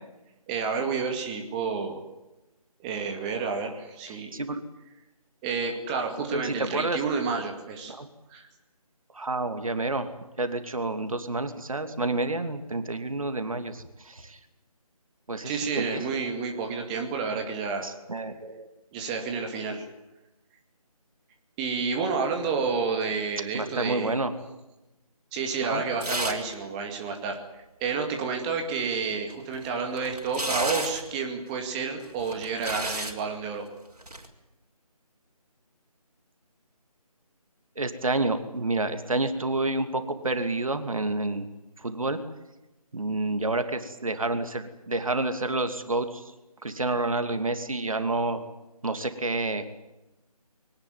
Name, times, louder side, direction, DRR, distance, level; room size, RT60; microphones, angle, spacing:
voice 1, 0.5-2.0 2.8-4.4 5.4-7.9 8.3-8.5 15.4-17.9 18.9-19.9 21.6-24.2 25.3-33.7, right 5 dB, 10° right, 4 dB, 2.3 m, -30 dB
voice 2, 4.1-4.6 6.3-7.0 7.9-8.1 9.1-10.1 10.4-14.4 15.3-16.1 17.8-18.7 23.5-24.3 25.7-25.8 37.8-41.5 41.8-42.2 42.9-46.2 46.6-48.4 48.8-49.6, right 2 dB, 60° right, 9 dB, 2.8 m, -29 dB
sound 1, 26.0-26.5 26.8-26.9 29.3-31.1 32.0-33.2 34.0-34.3, right 1 dB, 85° right, 4.9 m, -32 dB
23.0 x 19.0 x 9.4 m, 0.99 s
figure-of-eight pair, 160°, 20 cm